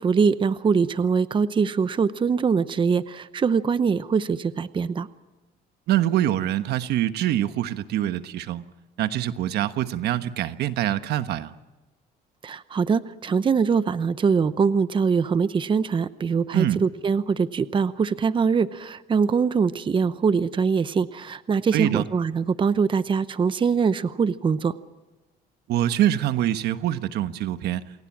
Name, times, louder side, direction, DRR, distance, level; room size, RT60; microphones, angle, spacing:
voice 1, 0.0-5.1 12.4-24.7, right 5 dB, 30° right, 14 dB, 0.8 m, -23 dB
voice 2, 5.9-8.6 9.0-11.5 16.5-16.8 21.7-22.0 25.7-27.8, right 12 dB, 75° right, 11 dB, 1.2 m, -24 dB
28.5 x 21.0 x 7.4 m, 1.1 s
cardioid pair, 110°, 17 cm